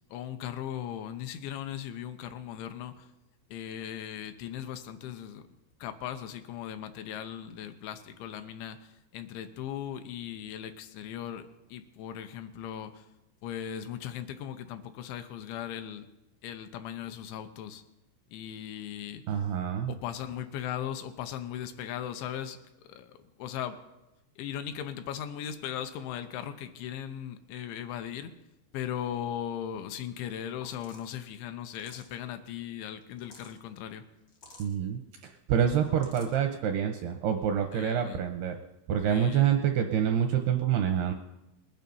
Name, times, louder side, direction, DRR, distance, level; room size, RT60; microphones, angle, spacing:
voice 1, 0.1-3.1 3.5-5.5 5.8-13.1 13.4-16.1 16.4-17.8 18.3-19.4 19.9-22.6 22.9-23.8 24.4-28.3 28.7-34.0 37.7-38.2 39.1-39.6, left 10 dB, 80° left, 8 dB, 3.1 m, -38 dB
voice 2, 19.3-19.9 34.6-38.6 38.9-41.1, right 8 dB, 80° right, 5 dB, 2.4 m, -27 dB
sound 1, 30.6-31.1 31.6-32.2 33.0-33.6 34.3-34.7 35.7-36.4, left 2 dB, 50° left, 1.3 m, -52 dB
21.0 x 9.2 x 5.4 m, 0.96 s
omnidirectional pair, 5.4 m